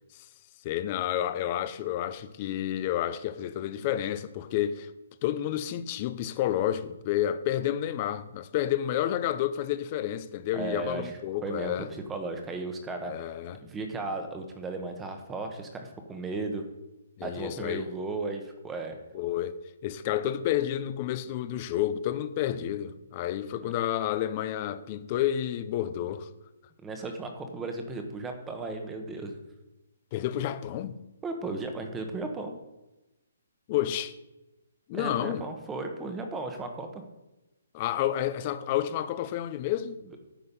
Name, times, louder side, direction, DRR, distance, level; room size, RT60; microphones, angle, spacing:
voice 1, 0.6-4.9 5.2-11.9 13.1-13.6 17.2-17.9 19.1-19.6 19.8-26.3 30.1-31.0 33.7-34.2 34.9-35.5 37.7-40.0, left 11 dB, 30° left, 0.6 m, -30 dB
voice 2, 10.5-13.3 13.6-16.6 17.2-19.0 23.6-23.7 26.8-29.4 31.2-32.5 34.9-37.0, right 3 dB, 10° right, 1.0 m, -35 dB
10.0 x 6.6 x 5.4 m
hypercardioid pair, 165°, 0 cm